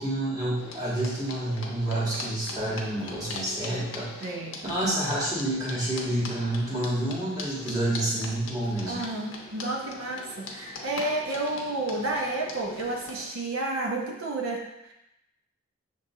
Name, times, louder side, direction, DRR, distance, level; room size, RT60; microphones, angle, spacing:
voice 1, 0.0-4.4 4.6-9.0, right 1 dB, 20° right, -7 dB, 1.1 m, -29 dB
sound 1, 0.6-13.2, left 3 dB, 65° left, 0.7 m, -41 dB
voice 2, 4.2-4.6 8.8-14.9, right 2 dB, 80° right, -1 dB, 0.7 m, -31 dB
6.6 x 2.7 x 2.6 m, 0.89 s
head